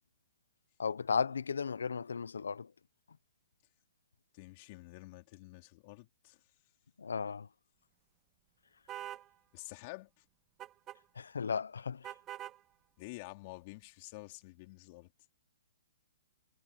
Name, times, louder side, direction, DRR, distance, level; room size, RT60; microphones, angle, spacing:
voice 1, 0.8-2.7 7.0-7.5 11.2-12.0, left 5 dB, 85° left, 0.8 m, -35 dB
voice 2, 4.3-6.4 9.5-10.2 13.0-15.1, left 23 dB, 40° left, 3.4 m, -49 dB
sound 1, 8.9-9.3 10.6-11.0 12.0-12.6, right 13 dB, 25° right, 0.5 m, -44 dB
hypercardioid pair, 140°, 0 cm